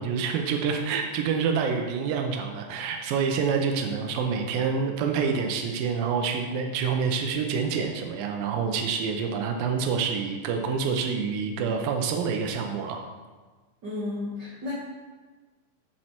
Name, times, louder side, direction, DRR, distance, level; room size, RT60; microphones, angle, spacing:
voice 1, 0.0-13.0, right 6 dB, 90° right, 4 dB, 2.6 m, -27 dB
voice 2, 13.8-14.7, left 2 dB, 55° right, -6 dB, 1.2 m, -33 dB
7.5 x 7.5 x 4.4 m, 1.3 s
omnidirectional pair, 4.0 m